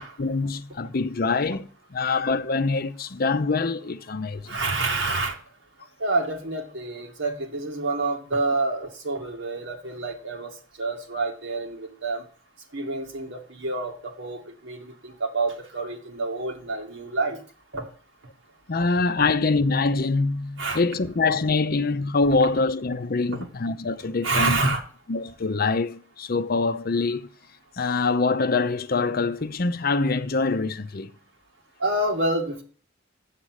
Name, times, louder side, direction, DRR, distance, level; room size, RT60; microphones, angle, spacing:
voice 1, 0.2-4.6 18.7-24.6 25.1-27.2 27.8-31.1, left 3 dB, 50° left, 0.6 m, -24 dB
voice 2, 4.4-5.4 6.0-12.2 12.7-17.4 17.7-17.9 20.6-20.8 24.2-24.8 31.8-32.6, right 2 dB, 70° right, 2.3 m, -28 dB
7.5 x 7.3 x 8.1 m
head